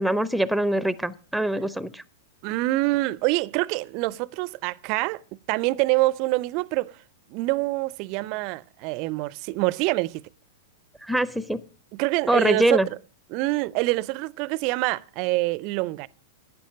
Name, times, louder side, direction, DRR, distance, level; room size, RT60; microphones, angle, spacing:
voice 1, 0.0-2.0 11.0-11.6 12.3-12.9, right 1 dB, ahead, 0.6 m, -23 dB
voice 2, 2.4-5.2 5.5-6.9 7.3-10.2 11.9-12.8 13.3-16.1, right 21 dB, 45° right, 0.4 m, -25 dB
11.5 x 8.9 x 6.4 m
figure-of-eight pair, 100°, 0 cm